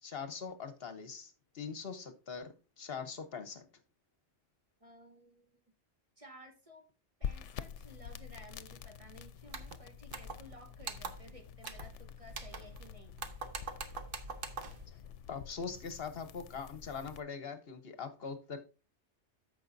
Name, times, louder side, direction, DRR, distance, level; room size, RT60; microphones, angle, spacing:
voice 1, 0.0-3.7 14.9-15.0 15.3-18.6, left 5 dB, 60° left, 9 dB, 1.1 m, -42 dB
voice 2, 4.8-5.6 6.2-6.9 7.2-13.4, equal, 30° right, 4 dB, 1.2 m, -56 dB
sound 1, 7.2-17.2, left 8 dB, 80° left, 0.9 m, -47 dB
sound 2, 9.5-9.8 10.1-10.5 10.8-11.3 11.6-12.0 12.3-12.9 13.2-14.8, right 4 dB, 55° right, 1.0 m, -43 dB
14.0 x 5.1 x 2.6 m, 0.33 s
omnidirectional pair, 1.2 m